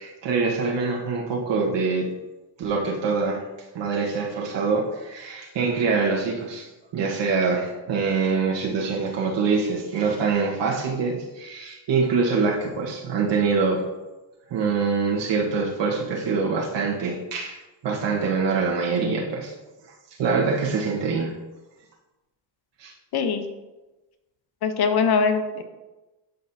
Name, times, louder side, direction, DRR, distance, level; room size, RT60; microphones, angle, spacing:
voice 1, 0.0-2.1 2.6-3.4 3.7-6.7 6.9-13.8 14.5-19.5 20.2-21.3 22.8-22.9, right 4 dB, 70° right, -2 dB, 1.4 m, -24 dB
voice 2, 24.6-25.6, left 5 dB, 55° left, 7 dB, 1.0 m, -22 dB
11.5 x 4.2 x 2.8 m, 1.1 s
cardioid pair, 85°, 45 cm